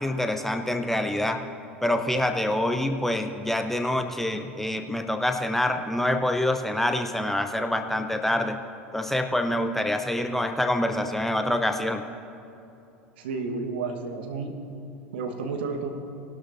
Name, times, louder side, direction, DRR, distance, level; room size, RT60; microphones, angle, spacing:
voice 1, 0.0-1.4 1.8-8.6 8.9-12.0, left 1 dB, 5° left, 6 dB, 0.6 m, -26 dB
voice 2, 13.2-14.5 15.1-15.9, right 4 dB, 65° right, 4 dB, 1.2 m, -31 dB
19.5 x 12.0 x 2.6 m, 2.7 s
figure-of-eight pair, 75°, 6 cm